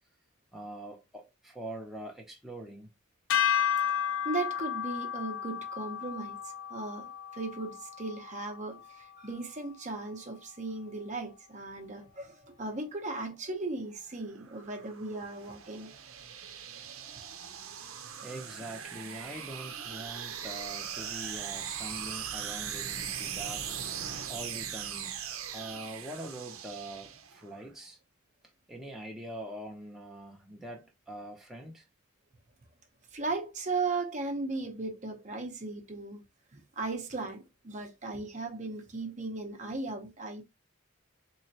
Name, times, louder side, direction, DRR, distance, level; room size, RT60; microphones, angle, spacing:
voice 1, 0.5-2.9 18.2-23.9 24.3-25.1 25.5-28.0 28.7-31.9, right 1 dB, ahead, 0.7 m, -43 dB
sound 1, 3.3-9.6, left 9 dB, 65° left, 0.4 m, -33 dB
voice 2, 4.2-15.9 33.1-36.2 36.5-40.4, right 3 dB, 35° right, 0.8 m, -37 dB
sound 2, 14.1-27.6, right 8 dB, 85° right, 0.7 m, -40 dB
4.1 x 3.1 x 2.8 m
head